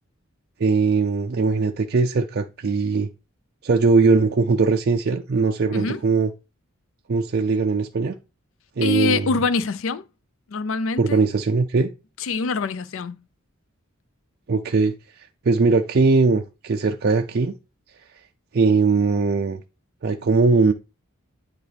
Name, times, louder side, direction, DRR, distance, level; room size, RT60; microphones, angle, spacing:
voice 1, 0.6-3.1 3.6-6.3 7.1-8.2 8.8-9.3 11.0-11.9 14.5-17.5 18.5-19.6 20.0-20.7, right 4 dB, 50° right, 0.5 m, -20 dB
voice 2, 8.8-10.0 10.5-11.2 12.2-13.2, left 4 dB, 65° left, 0.5 m, -25 dB
9.5 x 4.0 x 3.3 m
head